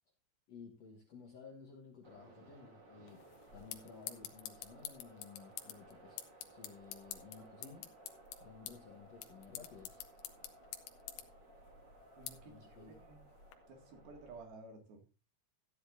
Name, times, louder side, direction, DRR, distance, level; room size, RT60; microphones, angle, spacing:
voice 1, 0.5-7.9 8.4-10.1 12.4-13.0, left 5 dB, 60° left, 1.8 m, -55 dB
sound 1, 2.0-14.5, right 1 dB, 35° right, 2.1 m, -59 dB
sound 2, 3.1-13.6, left 12 dB, 90° left, 3.2 m, -50 dB
voice 2, 12.2-13.2 13.7-15.1, right 3 dB, 70° right, 3.8 m, -54 dB
14.5 x 10.0 x 2.6 m
omnidirectional pair, 4.6 m